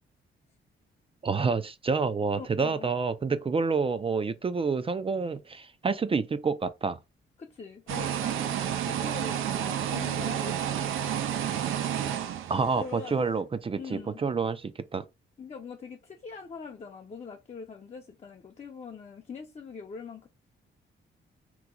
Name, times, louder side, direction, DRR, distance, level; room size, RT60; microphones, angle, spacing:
voice 1, 1.2-7.0 12.5-15.0, right 4 dB, 25° right, 0.4 m, -28 dB
voice 2, 2.4-2.9 7.4-8.5 8.9-11.0 12.8-13.3 13.8-14.2 15.4-20.3, left 5 dB, 30° left, 0.6 m, -43 dB
sound 1, 7.9-13.1, right 10 dB, 85° right, 0.5 m, -30 dB
3.0 x 2.1 x 3.7 m
cardioid pair, 90°, 20 cm